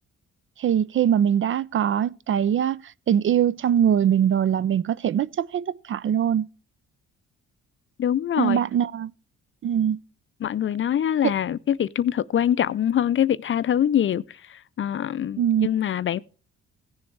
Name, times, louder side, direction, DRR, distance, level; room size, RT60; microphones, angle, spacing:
voice 1, 0.6-6.5 8.4-9.1 9.6-10.0 11.2-11.3 15.4-15.7, right 9 dB, 45° right, 0.4 m, -22 dB
voice 2, 8.0-8.6 10.4-16.2, left 10 dB, 40° left, 0.5 m, -24 dB
16.0 x 7.0 x 3.3 m
cardioid pair, 90°, 30 cm